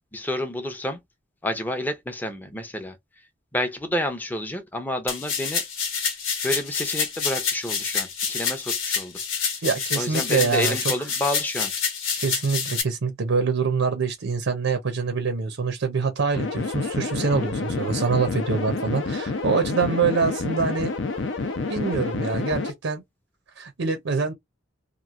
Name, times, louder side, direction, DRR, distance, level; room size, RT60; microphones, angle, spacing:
voice 1, 0.1-1.0 1.4-3.0 3.5-5.6 6.4-9.2 9.5-9.6 9.9-11.7, left 1 dB, 10° left, 0.5 m, -29 dB
sound 1, 5.1-12.8, left 6 dB, 90° left, 1.1 m, -27 dB
voice 2, 9.6-10.9 12.1-20.9 21.7-23.0 23.6-24.3, right 5 dB, 75° right, 0.6 m, -25 dB
sound 2, 16.3-22.7, left 3 dB, 65° left, 0.6 m, -28 dB
3.0 x 2.5 x 2.4 m
head